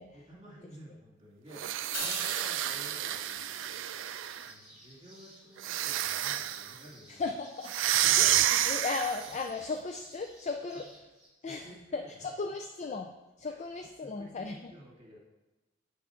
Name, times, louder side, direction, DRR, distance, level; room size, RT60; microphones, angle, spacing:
voice 1, 0.1-7.3 7.9-8.3 11.4-12.6 13.5-13.6 14.0-15.2, equal, 25° right, -4 dB, 2.1 m, -53 dB
sound 1, 1.5-4.5 5.6-6.7 7.6-9.4, right 12 dB, 75° right, 0.3 m, -29 dB
Crash cymbal, 1.9-4.3, left 2 dB, 60° left, 1.9 m, -43 dB
sound 2, 2.2-11.3, right 1 dB, 5° right, 2.1 m, -56 dB
voice 2, 7.1-7.7 8.2-10.9 11.4-11.7 11.9-13.1 13.4-14.7, left 4 dB, 35° left, 5 dB, 0.4 m, -36 dB
8.4 x 3.6 x 5.6 m, 1.1 s
head